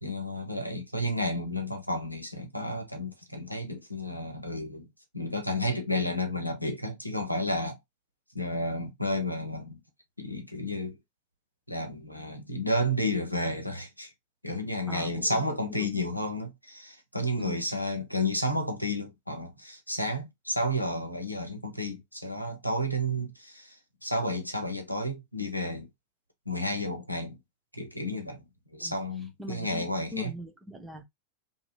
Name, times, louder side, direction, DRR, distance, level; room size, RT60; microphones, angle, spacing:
voice 1, 0.0-4.9 5.1-7.8 8.3-9.8 10.2-11.0 11.7-14.1 14.4-25.9 26.5-27.4 27.7-28.5 28.7-30.3, left 1 dB, 90° left, 0.8 m, -31 dB
voice 2, 14.9-15.3 15.8-16.0 17.4-17.6 28.8-29.0 29.4-29.9 30.1-31.0, left 1 dB, 10° right, 0.8 m, -40 dB
2.8 x 2.7 x 2.3 m
figure-of-eight pair, 90°, 0 cm